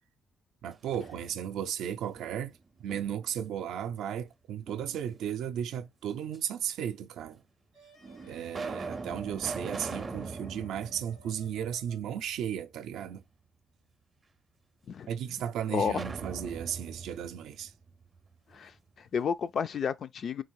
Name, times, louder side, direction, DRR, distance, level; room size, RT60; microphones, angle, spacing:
voice 1, 0.6-2.5 2.8-7.4 8.3-13.2 15.1-17.7, right 9 dB, 80° right, 0.5 m, -35 dB
sound 1, 0.7-1.7 2.1-3.4 4.7-5.5 6.3-6.4 7.3-7.4 8.0-12.1 12.4-12.5 15.8-18.6, right 4 dB, 30° right, 0.5 m, -42 dB
sound 2, 7.7-12.2, equal, 90° left, 2.7 m, -59 dB
voice 2, 15.7-16.0 18.5-18.7 19.0-20.4, left 7 dB, 55° left, 0.4 m, -31 dB
3.9 x 2.6 x 4.6 m
cardioid pair, 90°, 0 cm